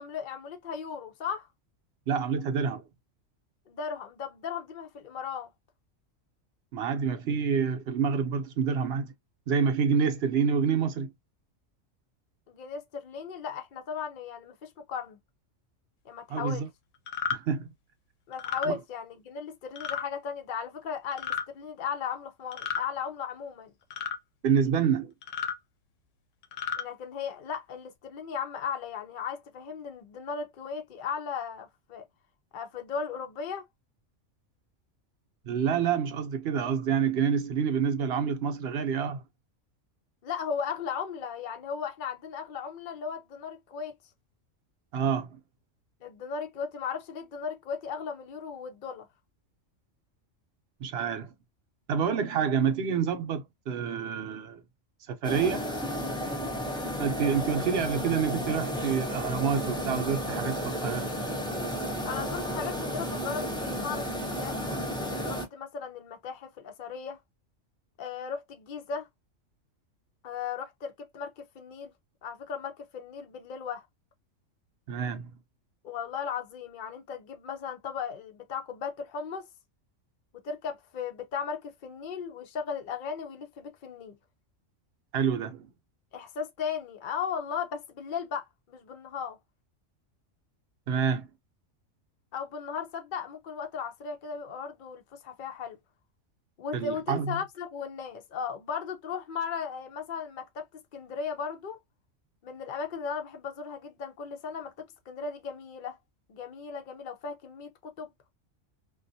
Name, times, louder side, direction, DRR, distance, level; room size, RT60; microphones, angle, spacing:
voice 1, 0.0-1.5 3.7-5.5 12.5-15.2 16.1-16.7 18.3-23.7 26.8-32.0 32.5-33.6 40.2-43.9 46.0-49.1 62.0-64.6 65.0-67.2 68.0-69.1 70.2-71.9 72.2-73.8 75.8-79.5 80.4-84.2 86.1-89.4 92.3-95.8 96.6-101.8 102.4-106.0 106.3-108.1, left 6 dB, 55° left, 0.6 m, -36 dB
voice 2, 2.1-2.8 6.7-9.1 9.5-11.1 16.3-16.7 17.3-17.7 18.6-18.8 24.4-25.1 35.4-39.2 44.9-45.4 50.8-51.3 51.9-54.6 55.1-55.7 57.0-61.1 74.9-75.3 85.1-85.7 90.9-91.3 96.7-97.4, right 6 dB, 60° right, 0.8 m, -28 dB
sound 1, 17.1-17.4 18.3-18.7 19.8-20.0 21.1-21.5 22.5-22.9 23.9-24.2 25.2-25.6 26.4-26.8, left 8 dB, 75° left, 0.9 m, -32 dB
sound 2, 55.2-65.5, equal, 5° left, 0.4 m, -32 dB
2.5 x 2.3 x 2.6 m
omnidirectional pair, 1.3 m